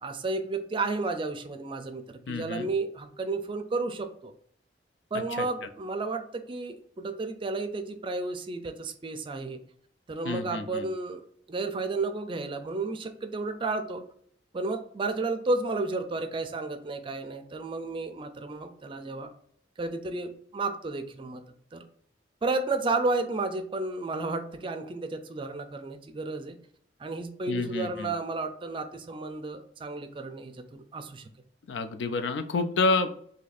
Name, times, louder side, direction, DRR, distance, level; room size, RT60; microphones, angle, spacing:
voice 1, 0.0-4.3 5.1-9.6 10.1-11.2 11.5-14.0 14.5-19.3 19.8-21.4 21.7-21.9 22.4-26.6 27.0-31.3, right 3 dB, 30° right, 7 dB, 0.4 m, -32 dB
voice 2, 2.3-2.7 10.3-10.9 27.5-28.1 31.7-33.1, left 3 dB, 85° left, 8 dB, 0.4 m, -28 dB
2.7 x 2.5 x 4.0 m, 0.62 s
head